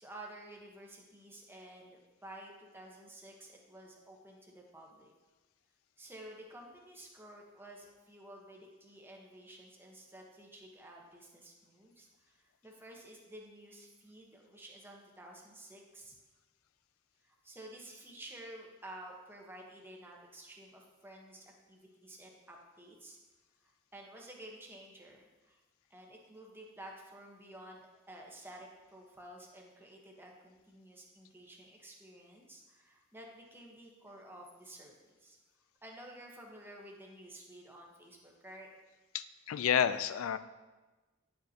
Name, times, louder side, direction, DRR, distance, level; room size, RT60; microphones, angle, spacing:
voice 1, 0.0-5.1 6.0-16.1 17.2-23.2 23.6-25.6 25.9-35.4 35.8-38.7, right 1 dB, 10° right, 0 dB, 1.1 m, -52 dB
voice 2, 39.1-40.4, left 8 dB, 90° left, 13 dB, 0.4 m, -30 dB
9.8 x 6.6 x 2.8 m, 1.2 s
head